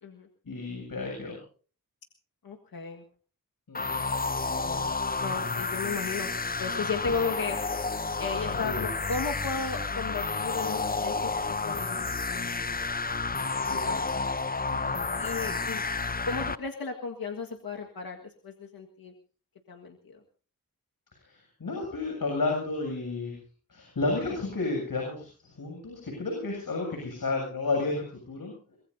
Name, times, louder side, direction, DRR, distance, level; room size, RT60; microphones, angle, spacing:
voice 1, 0.5-1.4 3.7-4.0 7.0-7.1 8.5-8.9 13.6-14.0 14.7-15.0 21.2-23.4 23.7-28.8, left 3 dB, 75° left, 1 dB, 7.6 m, -32 dB
voice 2, 2.4-3.0 4.6-6.3 6.6-7.6 8.2-12.8 15.2-15.8 16.2-19.1 19.7-20.2, left 5 dB, 90° left, 2 dB, 1.8 m, -35 dB
sound 1, 3.7-16.6, left 4 dB, 25° left, 0.7 m, -31 dB
24.0 x 21.5 x 2.7 m, 0.41 s
cardioid pair, 55°, 35 cm